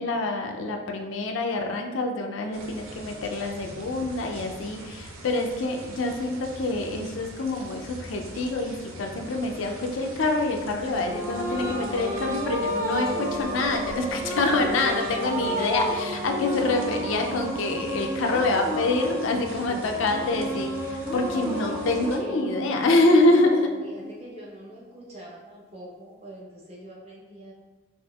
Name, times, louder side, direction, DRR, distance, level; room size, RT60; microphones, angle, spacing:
voice 1, 0.0-23.7, left 2 dB, 70° left, 3 dB, 0.4 m, -26 dB
sound 1, 2.5-22.2, right 2 dB, 85° right, 0.5 m, -43 dB
sound 2, 10.9-24.5, equal, 15° right, 0.4 m, -32 dB
voice 2, 14.3-15.2 15.5-15.6 19.6-20.6 21.6-22.4 23.8-27.5, right 1 dB, 30° right, -5 dB, 0.8 m, -44 dB
4.1 x 2.4 x 2.3 m, 1.3 s
head